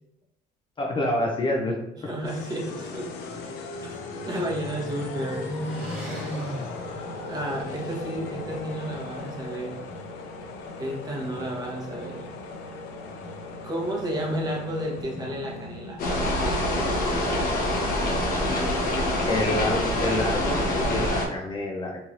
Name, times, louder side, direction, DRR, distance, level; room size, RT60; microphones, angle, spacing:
voice 1, 0.8-1.8 19.3-22.0, left 1 dB, 30° left, 0 dB, 0.4 m, -27 dB
voice 2, 2.0-3.1 3.8-4.0 4.3-5.6 7.3-9.7 10.8-12.3 13.6-16.0, right 1 dB, 25° right, -2 dB, 0.9 m, -32 dB
sound 1, 2.2-16.5, left 3 dB, 90° left, 0.5 m, -38 dB
sound 2, 3.3-8.0, right 1 dB, 5° right, 1.3 m, -37 dB
sound 3, 16.0-21.3, left 1 dB, 60° left, 0.8 m, -25 dB
3.1 x 2.8 x 2.5 m, 0.85 s
cardioid pair, 110°, 17 cm